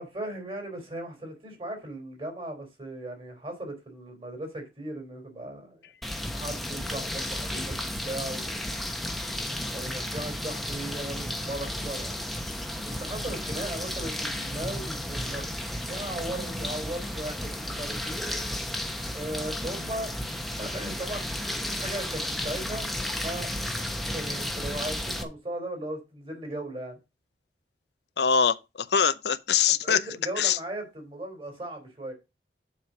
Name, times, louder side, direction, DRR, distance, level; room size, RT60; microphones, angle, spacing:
voice 1, 0.0-5.9 6.3-7.8 8.0-8.6 9.7-12.2 12.8-15.4 15.9-18.2 19.1-20.1 20.6-23.5 24.1-27.0 29.7-32.1, right 1 dB, 30° right, 3.5 m, -37 dB
sound 1, 6.0-25.2, left 1 dB, ahead, 1.0 m, -33 dB
voice 2, 28.2-30.0 30.4-30.6, left 7 dB, 75° left, 0.6 m, -23 dB
7.4 x 5.0 x 6.2 m
head